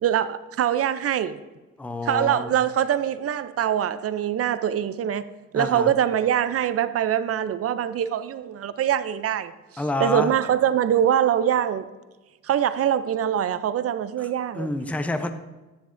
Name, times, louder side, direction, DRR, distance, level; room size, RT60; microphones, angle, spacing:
voice 1, 0.0-1.4 2.0-5.2 5.5-9.5 10.0-11.8 12.4-14.7, right 10 dB, 50° right, 0.5 m, -23 dB
voice 2, 1.8-2.5 5.5-5.9 9.8-10.3 14.2-14.3 14.5-15.3, left 2 dB, 5° left, 0.5 m, -28 dB
10.0 x 7.1 x 2.5 m
cardioid pair, 90°, 30 cm